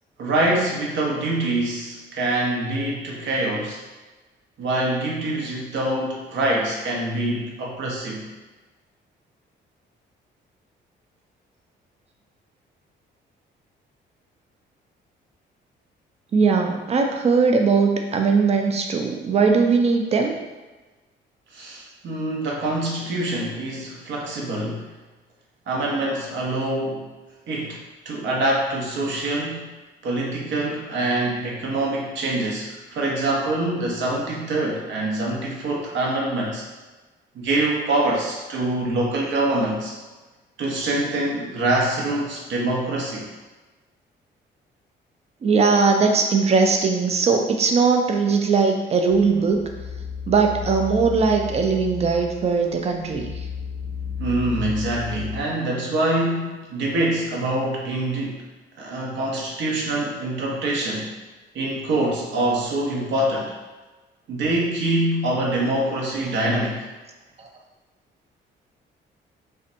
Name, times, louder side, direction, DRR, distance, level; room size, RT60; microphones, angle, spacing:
voice 1, 0.2-3.8 4.6-8.3 21.5-24.8 25.7-27.1 27.5-29.7 30.0-36.6 37.3-39.9 40.6-43.3 54.2-58.4 58.8-61.1 61.5-63.5 64.3-66.8, right 1 dB, 70° right, -2 dB, 0.7 m, -25 dB
voice 2, 16.3-20.4 45.4-49.6 50.3-53.3, right 4 dB, 35° right, 3 dB, 0.4 m, -20 dB
sound 1, 49.1-55.4, left 6 dB, 35° left, 0.4 m, -33 dB
2.6 x 2.1 x 2.5 m, 1.2 s
cardioid pair, 90°, 20 cm